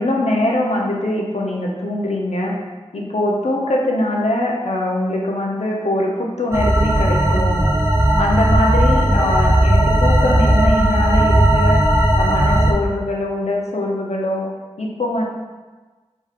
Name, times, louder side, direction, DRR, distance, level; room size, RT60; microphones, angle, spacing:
voice 1, 0.0-2.6 2.9-7.7 8.2-11.8 12.2-14.5 14.8-15.2, left 1 dB, 85° left, -2 dB, 0.6 m, -22 dB
sound 1, 6.5-12.7, right 1 dB, 25° right, 0.5 m, -15 dB
3.6 x 2.4 x 4.3 m, 1.3 s
wide cardioid pair, 45°, 11 cm